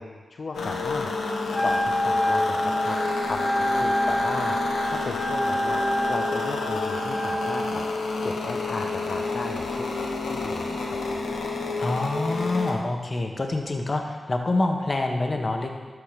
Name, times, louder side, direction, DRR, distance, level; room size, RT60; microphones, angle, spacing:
voice 1, 0.0-5.8 6.1-9.9 10.2-11.0, left 3 dB, 65° left, 2 dB, 0.6 m, -35 dB
sound 1, 0.5-12.7, left 3 dB, 90° left, 1.1 m, -29 dB
Wind instrument woodwind instrument, 1.5-7.7, equal, 20° left, 0.9 m, -27 dB
voice 2, 11.8-15.7, left 2 dB, 45° left, 3 dB, 1.4 m, -26 dB
12.5 x 5.0 x 5.1 m, 1.4 s
cardioid pair, 40°, 0 cm